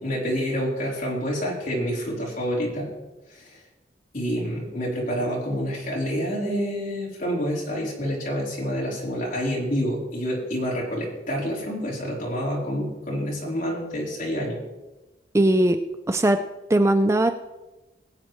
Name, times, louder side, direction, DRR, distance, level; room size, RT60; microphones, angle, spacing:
voice 1, 0.0-2.9 3.3-3.6 4.1-14.6, equal, 50° left, -5 dB, 3.9 m, -28 dB
voice 2, 15.3-15.8 16.1-16.4 16.7-17.3, right 1 dB, 15° right, 8 dB, 0.4 m, -19 dB
21.0 x 8.8 x 3.2 m, 1.1 s
head